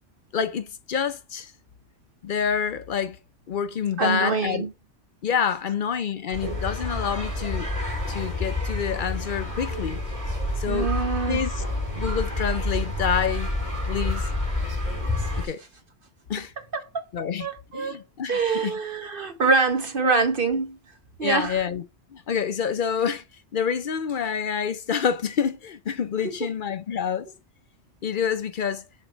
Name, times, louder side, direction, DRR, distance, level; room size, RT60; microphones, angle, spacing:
voice 1, 0.3-1.5 2.2-3.2 3.5-4.6 5.2-7.7 8.1-10.0 10.6-10.9 11.3-11.6 12.0-13.5 13.8-14.3 15.3-15.6 16.3-16.5 17.1-17.5 17.7-18.8 21.2-21.8 22.1-23.2 23.5-27.3 28.0-28.9, left 7 dB, 55° left, 0.7 m, -27 dB
voice 2, 4.0-4.7 10.7-11.5 17.4-18.0 18.3-20.8 21.2-21.6 26.2-26.5, right 4 dB, 50° right, 1.0 m, -24 dB
sound 1, 6.3-15.5, left 2 dB, 15° right, 2.2 m, -28 dB
7.1 x 3.3 x 4.4 m
omnidirectional pair, 1.2 m